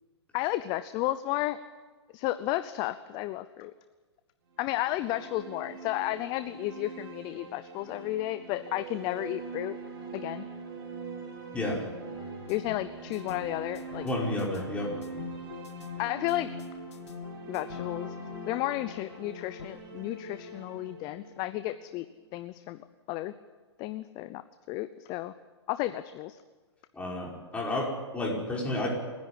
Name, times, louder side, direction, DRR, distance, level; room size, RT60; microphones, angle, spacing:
voice 1, 0.3-1.6 2.1-3.7 4.6-9.8 10.1-10.5 12.5-14.1 16.0-16.5 17.5-18.1 18.5-22.1 22.3-22.8 23.1-23.3 23.8-24.4 24.7-25.3 25.7-26.4, left 15 dB, 30° left, 13 dB, 0.7 m, -32 dB
sound 1, 4.5-22.5, right 4 dB, 50° right, 5.8 m, -44 dB
voice 2, 11.5-11.9 14.0-15.0 26.9-28.9, left 1 dB, 10° left, -2 dB, 5.1 m, -31 dB
sound 2, 12.1-19.7, left 6 dB, 80° left, 2.5 m, -44 dB
28.5 x 10.5 x 10.0 m, 1.3 s
hypercardioid pair, 140°, 15 cm